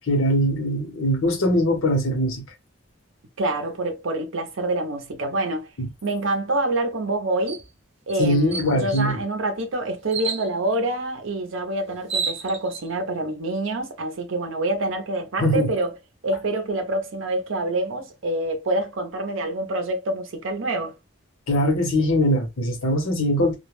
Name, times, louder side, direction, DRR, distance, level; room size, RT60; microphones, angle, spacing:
voice 1, 0.1-2.4 5.8-5.9 8.2-9.2 15.4-15.7 21.5-23.6, equal, 70° left, 0.8 m, -21 dB
voice 2, 3.4-5.7 6.0-7.6 8.1-16.0 16.2-20.9, right 2 dB, 65° right, 0.6 m, -26 dB
sound 1, 7.5-7.7 8.1-8.2 8.5-9.1 10.1-10.5 11.6-11.7 11.9-12.8, right 5 dB, 30° right, 0.6 m, -29 dB
2.2 x 2.1 x 3.1 m
head